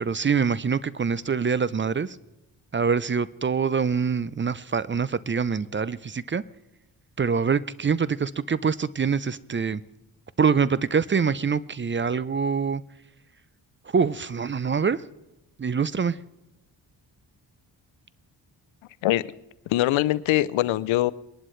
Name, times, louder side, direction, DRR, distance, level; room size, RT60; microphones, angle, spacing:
voice 1, 0.0-2.2 2.7-6.4 7.2-9.8 10.4-12.8 13.9-15.0 15.6-16.2, right 6 dB, 25° right, 0.5 m, -25 dB
voice 2, 19.7-21.1, left 16 dB, 80° left, 0.6 m, -22 dB
22.0 x 11.0 x 3.2 m
supercardioid pair, 45°, 47 cm